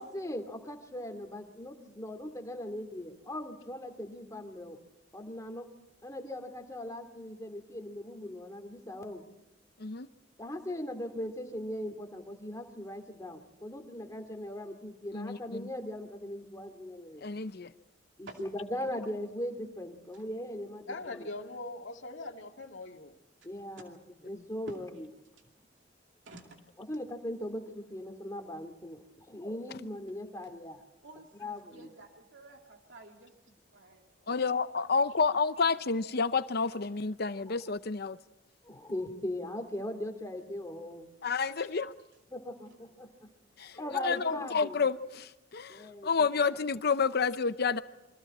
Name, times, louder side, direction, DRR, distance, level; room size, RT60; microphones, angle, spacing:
voice 1, 0.0-4.8 5.1-5.7 6.0-9.2 10.4-17.3 18.2-21.3 23.4-24.0 24.2-25.1 26.9-30.8 31.4-31.9 38.6-41.1 42.3-43.3 43.7-44.8 45.7-46.3, left 1 dB, 20° left, 2.5 m, -39 dB
voice 2, 15.1-15.7 17.2-17.7 34.3-38.2 41.2-41.9 43.6-47.8, left 5 dB, 60° left, 0.7 m, -30 dB
voice 3, 20.9-23.2 41.6-41.7, left 2 dB, 90° left, 2.0 m, -41 dB
voice 4, 26.2-26.6 31.0-34.5 43.9-44.4, right 2 dB, 90° right, 2.5 m, -52 dB
28.5 x 24.0 x 4.3 m
head